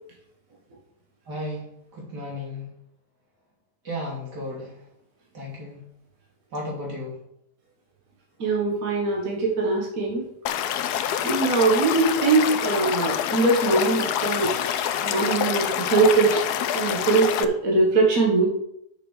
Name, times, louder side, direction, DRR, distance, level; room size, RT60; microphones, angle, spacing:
voice 1, 1.3-1.6 1.9-2.7 3.8-4.8 5.3-5.8 6.5-7.2, left 1 dB, 85° right, -3 dB, 3.5 m, -33 dB
voice 2, 8.4-10.2 11.2-14.5 15.0-16.4 16.7-18.4, right 3 dB, 60° right, -2 dB, 1.9 m, -21 dB
Stream / Liquid, 10.5-17.5, left 10 dB, 75° left, 1.2 m, -26 dB
6.6 x 6.0 x 6.5 m, 0.77 s
omnidirectional pair, 1.8 m